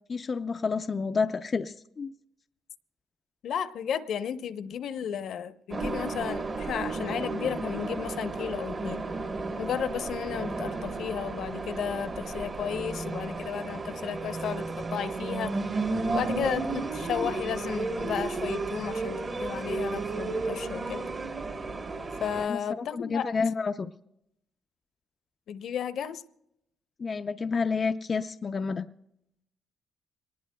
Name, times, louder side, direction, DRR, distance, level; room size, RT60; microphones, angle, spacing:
voice 1, 0.1-2.1 22.4-23.9 27.0-28.9, left 5 dB, 30° left, 7 dB, 0.4 m, -29 dB
voice 2, 3.4-9.0 9.6-15.5 16.1-21.1 22.2-23.3 25.5-26.2, left 8 dB, 65° left, 11 dB, 0.7 m, -33 dB
sound 1, 5.7-22.5, right 3 dB, 35° right, 1.2 m, -33 dB
24.5 x 19.5 x 2.2 m, 0.80 s
cardioid pair, 125°, 0 cm